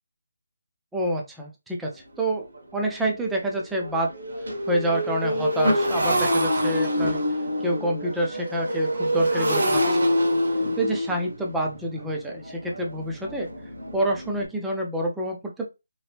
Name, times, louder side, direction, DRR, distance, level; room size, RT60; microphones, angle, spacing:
voice 1, 0.9-2.4 2.7-4.1 4.7-7.2 7.6-10.0 10.8-13.5 13.9-15.7, right 1 dB, 5° right, -1 dB, 0.5 m, -27 dB
Motorcycle, 1.8-1.9 2.4-2.6 2.9-14.5, equal, 75° right, 1.1 m, -26 dB
2.9 x 2.0 x 3.2 m, 0.25 s
figure-of-eight pair, 165°, 0 cm